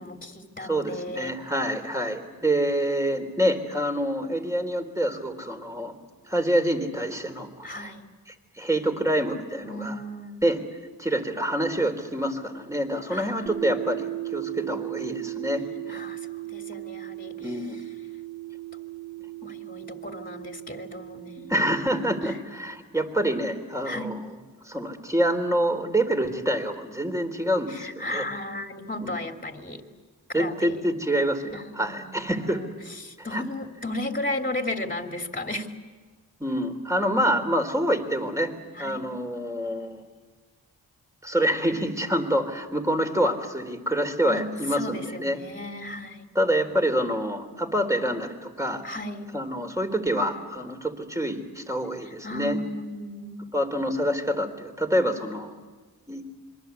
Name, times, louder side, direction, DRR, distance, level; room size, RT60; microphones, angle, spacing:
voice 1, 0.0-1.3 7.6-8.1 9.6-10.4 13.1-13.5 15.9-17.5 19.4-21.5 22.2-22.3 23.8-24.1 27.7-29.8 30.3-30.8 31.5-35.7 38.7-39.0 44.3-44.4 44.7-46.3 48.8-49.3 52.0-53.4, left 1 dB, 20° left, 3 dB, 2.9 m, -35 dB
voice 2, 0.6-5.9 6.3-7.9 8.6-10.0 10.4-10.6 11.0-15.6 15.9-16.0 17.4-17.8 21.4-24.2 24.7-28.2 29.0-29.2 30.3-32.6 33.2-33.4 36.4-38.5 38.8-40.0 41.2-45.4 46.3-48.8 49.3-52.6 53.5-55.6 56.1-56.2, equal, 10° right, 5 dB, 3.9 m, -26 dB
sound 1, 13.5-22.3, right 17 dB, 25° right, 3.7 m, -37 dB
26.5 x 22.5 x 8.4 m, 1.4 s
cardioid pair, 60°, 40 cm